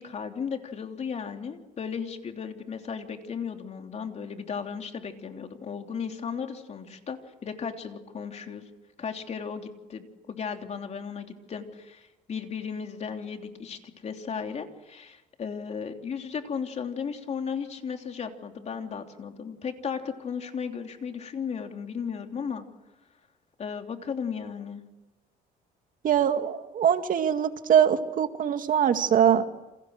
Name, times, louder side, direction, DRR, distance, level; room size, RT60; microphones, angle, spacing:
voice 1, 0.0-8.6 9.0-22.6 23.6-24.8, left 6 dB, 40° left, 4 dB, 3.2 m, -35 dB
voice 2, 26.0-29.4, right 9 dB, 55° right, 7 dB, 2.2 m, -22 dB
29.0 x 27.5 x 6.6 m, 1.0 s
cardioid pair, 110°, 17 cm